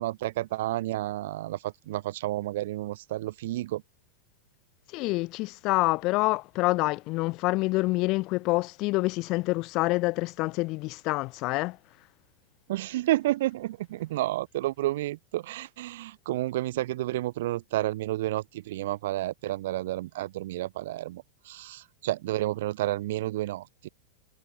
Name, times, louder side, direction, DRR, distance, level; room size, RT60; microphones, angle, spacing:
voice 1, 0.0-3.8 12.7-23.9, right 15 dB, 55° right, 2.8 m, -31 dB
voice 2, 4.9-11.8, left 22 dB, 40° left, 0.4 m, -27 dB
figure-of-eight pair, 90°, 0 cm